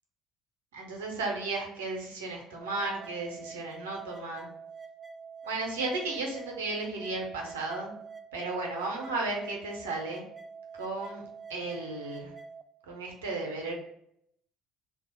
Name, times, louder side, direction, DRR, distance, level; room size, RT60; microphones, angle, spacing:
voice 1, 0.7-4.5 5.4-7.9 8.3-10.2 10.8-11.2 11.5-12.3 12.9-13.7, right 3 dB, 75° right, 1 dB, 0.8 m, -34 dB
sound 1, 2.6-12.6, right 5 dB, 10° right, 0.4 m, -46 dB
3.3 x 2.3 x 4.3 m, 0.73 s
figure-of-eight pair, 55°, 0 cm